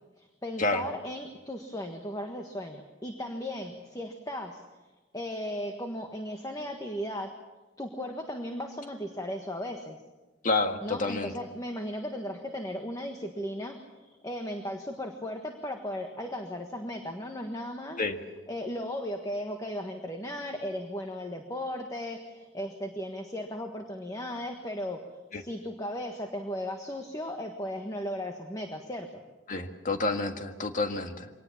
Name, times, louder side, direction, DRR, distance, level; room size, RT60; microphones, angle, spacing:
voice 1, 0.2-4.6 5.1-7.3 7.8-10.0 10.8-18.0 18.5-25.0 25.3-29.2, left 1 dB, 20° left, 4 dB, 1.5 m, -36 dB
voice 2, 10.4-11.3 18.0-18.2 25.3-25.4 29.5-31.3, left 3 dB, 45° left, 6 dB, 1.7 m, -29 dB
24.5 x 19.0 x 7.3 m, 1.2 s
head